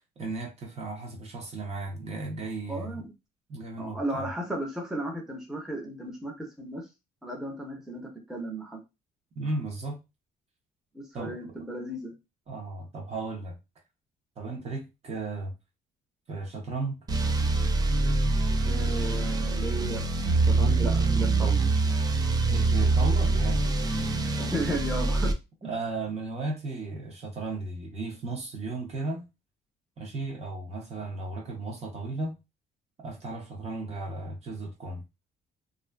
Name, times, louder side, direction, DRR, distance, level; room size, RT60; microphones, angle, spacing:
voice 1, 0.0-3.0 3.5-4.3 9.4-10.0 11.1-11.6 12.5-13.5 14.4-15.5 16.3-17.0 22.5-23.7 25.6-29.2 30.0-32.4 33.0-35.0, right 3 dB, 40° right, 0.7 m, -35 dB
voice 2, 2.7-3.1 3.8-6.8 7.2-8.8 10.9-12.1 14.6-14.7 18.6-20.0 20.5-21.6 24.4-25.3, right 1 dB, 5° right, 0.7 m, -34 dB
sound 1, 17.1-25.3, right 3 dB, 25° right, 0.3 m, -25 dB
2.4 x 2.3 x 2.2 m
cardioid pair, 110°, 17 cm